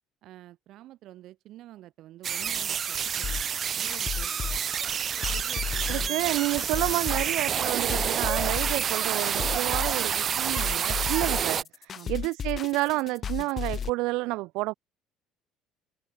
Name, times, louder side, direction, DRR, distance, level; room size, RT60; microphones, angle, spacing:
voice 1, 0.2-4.6 5.3-6.3 11.9-12.2, right 14 dB, 45° right, 6.1 m, -48 dB
sound 1, 2.2-11.6, right 8 dB, 30° right, 0.9 m, -28 dB
sound 2, 3.2-13.9, left 7 dB, 25° left, 3.0 m, -34 dB
voice 2, 5.9-14.7, right 22 dB, 65° right, 0.7 m, -30 dB
cardioid pair, 175°, 0 cm